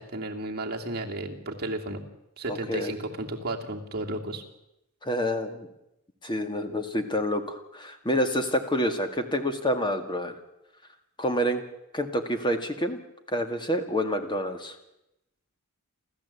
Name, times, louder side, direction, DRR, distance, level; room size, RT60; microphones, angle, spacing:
voice 1, 0.0-2.0 2.4-4.4, right 2 dB, 45° right, 0 dB, 2.8 m, -33 dB
voice 2, 2.5-2.9 5.0-5.7 6.2-10.4 11.2-11.6 11.9-13.0 13.3-14.8, equal, 20° left, 7 dB, 2.1 m, -28 dB
29.0 x 13.5 x 8.4 m, 0.89 s
head